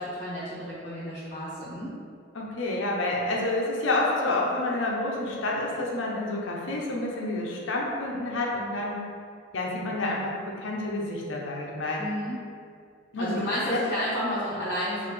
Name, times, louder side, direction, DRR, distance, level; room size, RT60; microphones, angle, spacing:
voice 1, 0.0-1.9 12.0-12.4 13.2-15.1, equal, 35° left, -11 dB, 0.9 m, -31 dB
voice 2, 2.3-9.0 9.5-12.0 13.1-13.4 13.7-13.8, left 2 dB, 85° left, -2 dB, 0.7 m, -29 dB
4.9 x 2.7 x 3.1 m, 2.2 s
head